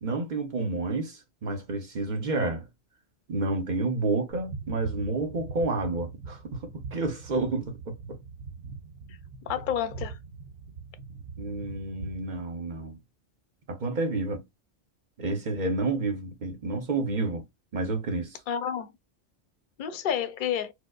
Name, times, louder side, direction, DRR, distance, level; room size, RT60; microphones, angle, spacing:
voice 1, 0.0-2.6 3.3-8.2 11.4-13.0 13.7-14.4 15.2-17.4 17.7-18.4, right 3 dB, 45° right, 0.8 m, -30 dB
sound 1, 4.3-12.4, right 4 dB, 90° right, 0.9 m, -42 dB
voice 2, 9.5-10.2 18.5-18.9 19.8-20.7, left 9 dB, 55° left, 0.7 m, -29 dB
4.6 x 2.0 x 2.3 m
omnidirectional pair, 1.2 m